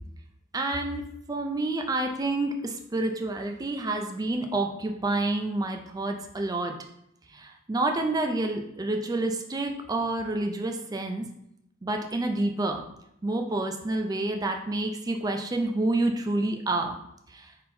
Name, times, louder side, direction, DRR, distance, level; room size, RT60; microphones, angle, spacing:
voice 1, 0.5-6.7 7.3-11.3 11.8-12.8 13.2-17.0 17.3-17.5, right 2 dB, 20° right, 4 dB, 0.3 m, -28 dB
4.2 x 3.7 x 2.6 m, 0.79 s
head